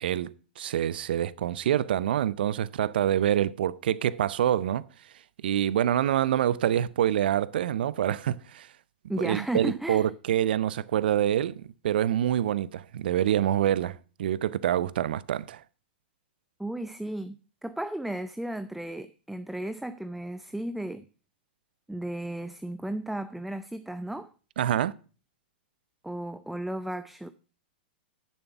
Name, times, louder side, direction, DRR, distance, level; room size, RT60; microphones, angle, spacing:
voice 1, 0.0-4.9 5.4-8.7 9.2-15.6 24.6-24.9, right 11 dB, 70° right, 0.6 m, -26 dB
voice 2, 9.1-10.1 16.6-17.4 17.6-21.1 21.9-24.3 26.0-27.3, right 1 dB, 5° right, 0.5 m, -34 dB
10.5 x 7.2 x 5.9 m
hypercardioid pair, 115°, 5 cm